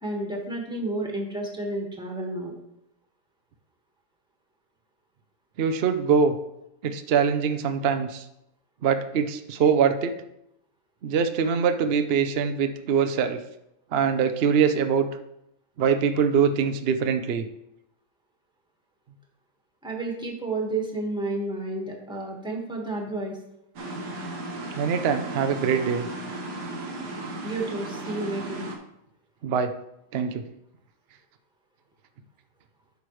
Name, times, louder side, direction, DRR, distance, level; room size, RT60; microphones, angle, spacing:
voice 1, 0.0-2.5 19.8-23.4 27.4-28.7, right 2 dB, 5° right, 0 dB, 1.4 m, -31 dB
voice 2, 5.6-6.3 6.8-8.2 8.8-10.1 11.0-13.4 13.9-15.1 15.8-17.5 24.7-26.1 29.4-29.7 30.1-30.4, right 6 dB, 60° right, 8 dB, 0.6 m, -23 dB
sound 1, 23.8-28.8, right 2 dB, 80° right, 1.8 m, -35 dB
10.5 x 6.6 x 3.1 m, 0.80 s
omnidirectional pair, 1.8 m